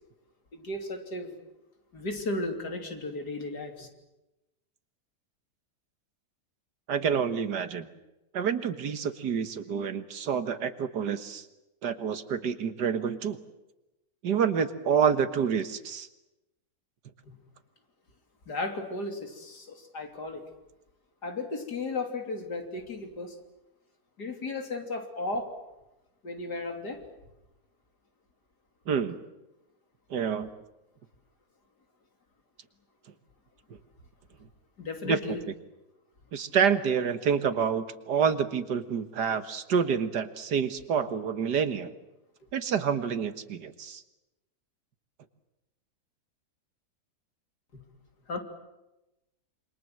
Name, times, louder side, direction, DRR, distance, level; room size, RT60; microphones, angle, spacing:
voice 1, 0.5-1.3 1.9-3.9 18.5-20.4 21.2-23.4 24.2-25.5 26.2-27.0 34.8-35.4 48.3-48.4, left 2 dB, 70° left, 5 dB, 3.7 m, -34 dB
voice 2, 6.9-7.9 8.3-11.5 11.8-13.4 14.2-16.1 28.9-29.2 30.1-30.5 35.0-35.2 36.3-41.9 42.5-44.0, right 7 dB, 75° right, 11 dB, 2.0 m, -28 dB
27.5 x 25.5 x 7.8 m, 0.96 s
omnidirectional pair, 1.8 m